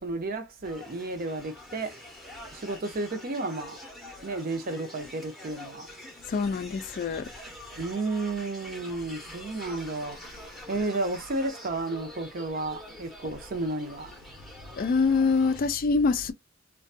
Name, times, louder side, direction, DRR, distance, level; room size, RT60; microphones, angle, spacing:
voice 1, 0.0-1.9 2.5-3.8 4.2-5.9 7.8-10.3 10.7-14.1, right 2 dB, 45° right, 0.6 m, -32 dB
sound 1, 0.6-15.6, left 1 dB, ahead, 0.7 m, -46 dB
voice 2, 6.3-7.3 14.8-16.3, left 4 dB, 45° left, 0.3 m, -25 dB
2.5 x 2.2 x 2.5 m
head